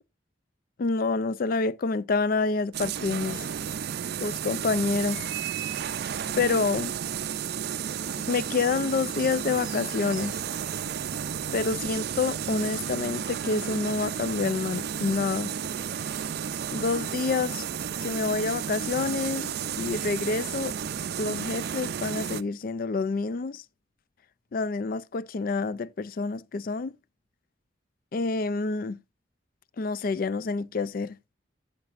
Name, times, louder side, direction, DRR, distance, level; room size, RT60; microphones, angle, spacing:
voice 1, 0.8-3.4 4.2-5.2 5.6-5.8 6.4-6.9 8.3-10.4 11.5-15.5 16.7-17.6 18.0-20.7 21.2-23.6 24.5-26.9 28.1-29.0 29.8-31.2, left 4 dB, 50° left, 0.4 m, -28 dB
sound 1, 2.7-22.4, right 8 dB, 60° right, 0.4 m, -32 dB
sound 2, 9.1-20.3, right 2 dB, 5° right, 5.2 m, -56 dB
14.5 x 5.9 x 2.5 m
head